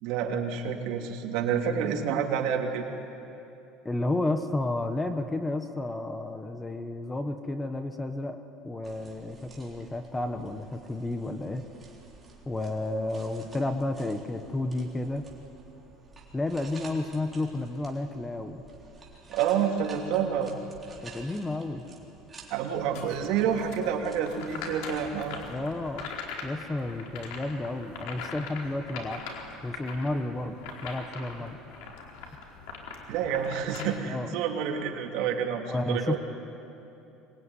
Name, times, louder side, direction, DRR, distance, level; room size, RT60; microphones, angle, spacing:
voice 1, 0.0-2.8 19.3-20.5 22.5-25.4 33.1-36.2, right 7 dB, 60° right, 1 dB, 3.1 m, -28 dB
voice 2, 3.8-8.4 8.6-11.6 12.5-15.3 16.3-18.6 21.0-21.8 25.5-26.1 26.4-29.2 29.6-31.6 34.1-34.3 35.7-36.2, left 2 dB, 10° left, 8 dB, 1.1 m, -31 dB
sound 1, 8.8-26.1, right 4 dB, 15° right, 3.8 m, -52 dB
sound 2, 22.9-33.8, left 5 dB, 80° left, 4.4 m, -42 dB
25.0 x 21.5 x 9.8 m, 2.9 s
cardioid pair, 160°, 0 cm